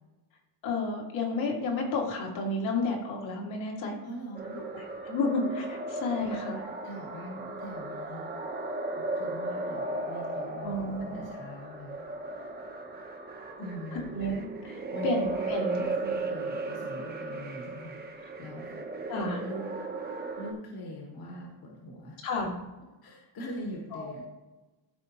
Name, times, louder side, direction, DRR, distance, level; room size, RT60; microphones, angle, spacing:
voice 1, 0.6-4.0 4.7-6.7 10.6-11.3 14.1-16.1 19.1-19.4 22.2-22.6 23.9-24.2, left 2 dB, 75° left, -2 dB, 2.2 m, -32 dB
voice 2, 4.0-4.6 6.8-8.3 9.1-12.0 12.4-12.6 13.6-14.2 14.9-15.1 15.4-18.8 19.4-19.7 20.4-22.2 23.0-24.2, left 1 dB, 50° left, -1 dB, 1.6 m, -42 dB
sound 1, 4.3-20.5, right 3 dB, 20° right, 1.0 m, -36 dB
13.5 x 4.7 x 2.9 m, 1.1 s
cardioid pair, 140°, 47 cm